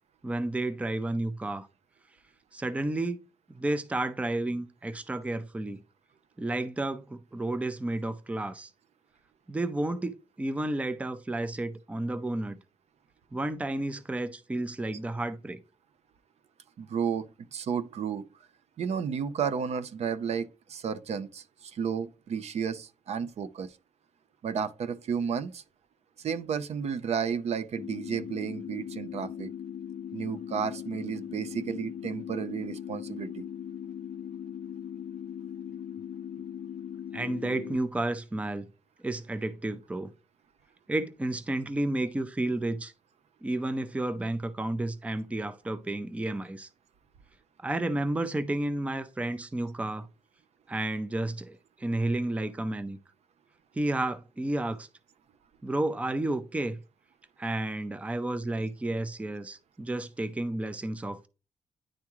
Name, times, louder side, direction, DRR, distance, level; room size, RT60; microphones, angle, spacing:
voice 1, 0.2-1.7 2.5-3.2 3.5-5.8 6.4-8.7 9.5-12.6 13.3-15.6 37.1-38.7 39.0-40.1 40.9-42.9 43.4-46.7 47.6-50.1 50.7-53.0 53.8-54.9 55.6-56.8 57.4-61.3, right 2 dB, 10° right, 0.5 m, -31 dB
voice 2, 16.8-18.3 18.8-23.7 24.4-25.6 26.2-29.5 30.1-33.5, right 7 dB, 60° right, 0.6 m, -32 dB
sound 1, 27.8-37.8, left 9 dB, 60° left, 0.4 m, -39 dB
9.9 x 3.6 x 3.0 m
wide cardioid pair, 125°, 12 cm